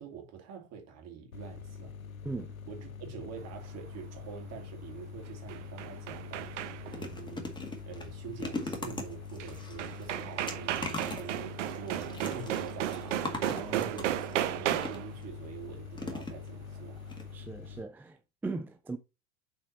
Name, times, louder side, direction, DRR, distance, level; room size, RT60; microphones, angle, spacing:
voice 1, 0.0-2.0 2.7-17.2, right 6 dB, 40° right, 2.7 m, -46 dB
sound 1, 1.3-17.8, left 6 dB, 85° left, 0.8 m, -45 dB
sound 2, 5.3-7.0 9.4-9.5 9.8-15.1, right 12 dB, 60° right, 0.8 m, -34 dB
sound 3, 5.9-6.1 6.5-15.2 15.9-16.7 17.1-17.2 17.5-17.6, left 2 dB, 10° left, 1.9 m, -41 dB
voice 2, 13.5-14.0 17.3-19.0, right 3 dB, 5° right, 0.4 m, -39 dB
7.2 x 4.4 x 4.2 m
figure-of-eight pair, 80°, 40 cm